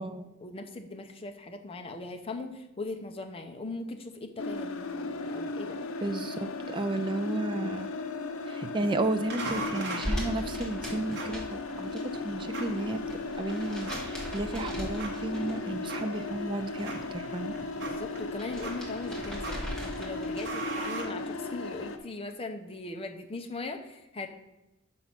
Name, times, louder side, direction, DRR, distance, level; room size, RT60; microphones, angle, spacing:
voice 1, 0.0-5.8 17.8-24.3, left 2 dB, 25° left, 5 dB, 0.6 m, -40 dB
sound 1, 4.4-22.0, left 3 dB, 80° left, 0.6 m, -36 dB
voice 2, 6.0-7.9 8.5-17.5, right 2 dB, 25° right, 8 dB, 0.4 m, -33 dB
sound 2, 9.3-21.8, right 2 dB, 55° right, 1.2 m, -42 dB
sound 3, 10.0-12.0 12.3-15.8 16.1-17.1 17.4-20.7, equal, 5° left, 1.4 m, -39 dB
5.8 x 5.3 x 5.8 m, 0.94 s
head